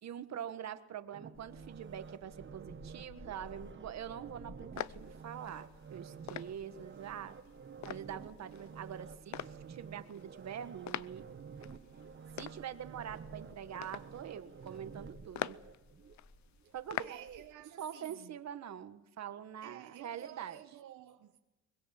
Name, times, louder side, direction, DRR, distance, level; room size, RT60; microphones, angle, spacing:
voice 1, 0.0-7.4 7.8-11.3 12.4-15.6 16.7-17.4 17.8-20.6, right 9 dB, 60° right, 1.5 m, -44 dB
sound 1, 1.1-16.2 16.6-16.7, right 6 dB, 40° right, 1.2 m, -51 dB
sound 2, 1.3-17.5, left 2 dB, 45° left, 4.1 m, -59 dB
sound 3, 4.8-17.4, left 13 dB, 65° left, 0.7 m, -45 dB
voice 2, 17.0-18.3 19.6-21.4, right 11 dB, 80° right, 1.2 m, -52 dB
23.0 x 21.0 x 7.3 m
cardioid pair, 90°, 30 cm